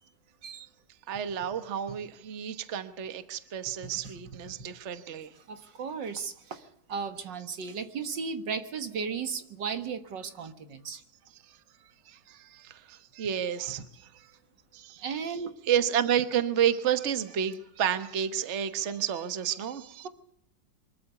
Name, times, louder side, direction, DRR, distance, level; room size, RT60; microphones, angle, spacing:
voice 1, 1.1-5.3 12.1-13.8 14.1-14.3 14.7-15.0 15.7-20.1, right 9 dB, 45° right, 10 dB, 1.4 m, -30 dB
voice 2, 5.5-6.6 6.9-11.0 13.6-13.7 15.0-15.5, right 5 dB, 75° right, 9 dB, 2.2 m, -35 dB
24.5 x 13.5 x 8.2 m, 0.70 s
omnidirectional pair, 2.0 m